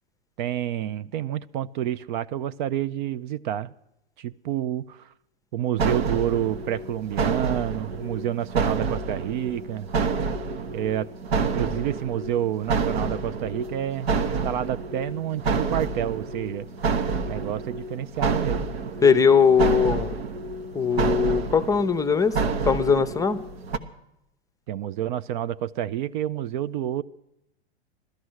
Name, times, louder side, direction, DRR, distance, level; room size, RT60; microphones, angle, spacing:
voice 1, 0.4-3.7 4.2-5.1 5.5-9.9 10.7-11.1 11.4-16.7 17.2-18.7 24.7-27.0, right 11 dB, 50° right, 15 dB, 0.5 m, -29 dB
sound 1, 5.8-23.8, right 4 dB, 75° right, 1.2 m, -28 dB
voice 2, 19.0-20.1 20.7-22.4 22.7-23.4, left 6 dB, 10° left, 12 dB, 0.7 m, -20 dB
16.5 x 13.0 x 6.3 m, 0.82 s
hypercardioid pair, 110°, 31 cm